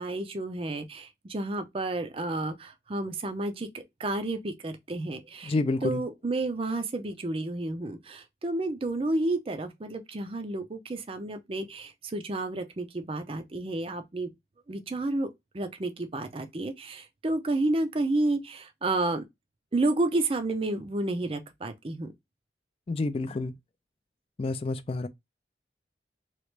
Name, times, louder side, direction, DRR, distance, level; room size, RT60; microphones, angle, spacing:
voice 1, 0.0-5.5 5.8-14.3 14.7-15.3 15.5-19.2 19.7-22.1, right 2 dB, 30° right, 0.5 m, -31 dB
voice 2, 5.4-6.0 22.9-23.5 24.4-25.1, left 3 dB, 35° left, 0.3 m, -29 dB
3.0 x 2.4 x 3.1 m
head